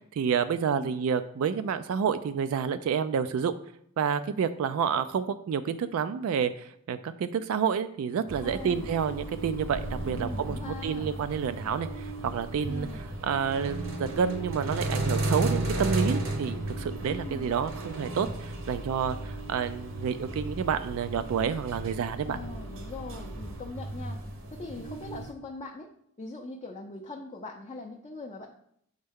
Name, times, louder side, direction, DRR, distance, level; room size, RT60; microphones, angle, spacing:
voice 1, 0.1-3.5 4.0-12.9 13.2-22.4, right 7 dB, 75° right, 11 dB, 0.3 m, -29 dB
sound 1, 8.3-25.3, right 2 dB, 60° right, 0.9 m, -34 dB
voice 2, 8.4-8.9 10.1-11.1 12.7-13.0 17.1-17.5 22.2-24.2 24.5-25.9 26.2-28.5, left 2 dB, 25° left, 1 dB, 0.4 m, -41 dB
6.4 x 4.4 x 3.5 m, 0.69 s
head